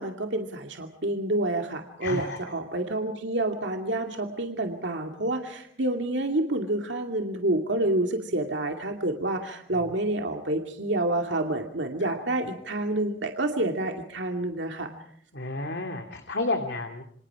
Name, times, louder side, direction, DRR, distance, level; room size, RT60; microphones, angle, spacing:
voice 1, 0.0-14.9, right 1 dB, 75° right, 3 dB, 2.4 m, -28 dB
voice 2, 2.0-2.4 12.0-12.1 15.3-17.0, left 2 dB, 70° left, 4 dB, 2.6 m, -31 dB
28.5 x 25.5 x 4.9 m, 0.64 s
head